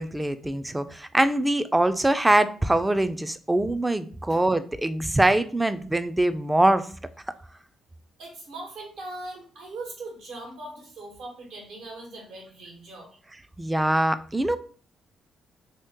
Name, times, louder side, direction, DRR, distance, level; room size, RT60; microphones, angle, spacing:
voice 1, 0.0-6.9 13.6-14.6, right 1 dB, 10° right, 11 dB, 0.3 m, -23 dB
voice 2, 8.2-13.1, right 2 dB, 75° right, 0 dB, 1.3 m, -40 dB
2.8 x 2.8 x 3.5 m, 0.43 s
cardioid pair, 90°, 0 cm